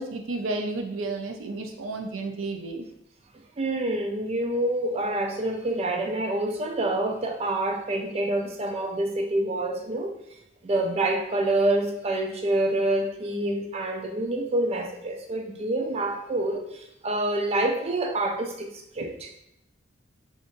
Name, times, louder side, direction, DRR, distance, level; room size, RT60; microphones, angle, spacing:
voice 1, 0.0-2.8 19.0-19.1, right 2 dB, 85° right, 4 dB, 0.5 m, -32 dB
voice 2, 3.6-10.1 10.6-19.4, right 1 dB, 30° right, 3 dB, 0.4 m, -27 dB
5.2 x 2.5 x 2.5 m, 0.80 s
head